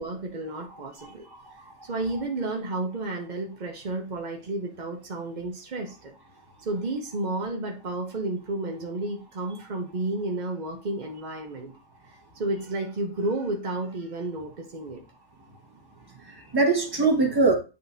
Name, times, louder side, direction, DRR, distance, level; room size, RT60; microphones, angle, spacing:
voice 1, 0.0-1.3 1.8-6.1 6.6-11.7 12.1-15.0, right 2 dB, 50° right, 1 dB, 0.5 m, -32 dB
voice 2, 1.0-1.6 16.3-17.5, right 3 dB, 15° right, 1 dB, 1.2 m, -23 dB
9.5 x 3.8 x 2.7 m, 0.31 s
omnidirectional pair, 1.9 m